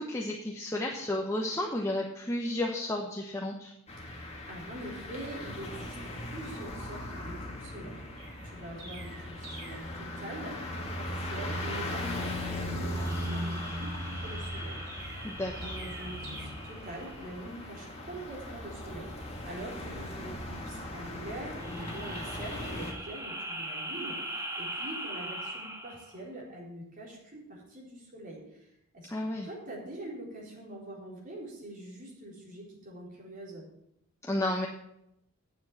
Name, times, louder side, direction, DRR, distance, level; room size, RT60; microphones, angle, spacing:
voice 1, 0.0-3.7 15.2-15.8 29.1-29.5 34.2-34.7, left 1 dB, 15° left, 0 dB, 0.9 m, -32 dB
sound 1, 3.9-22.9, left 1 dB, 30° left, 1.9 m, -38 dB
voice 2, 4.1-10.5 11.0-15.2 15.6-28.7 28.9-29.1 29.4-33.6, right 1 dB, 40° right, -3 dB, 3.9 m, -44 dB
Chirp tweet, 8.2-9.9 14.9-16.4, right 2 dB, 60° right, 4.4 m, -47 dB
sound 2, 12.9-17.6 21.4-26.2, right 1 dB, 15° right, 1.5 m, -41 dB
9.3 x 7.3 x 7.6 m, 0.80 s
head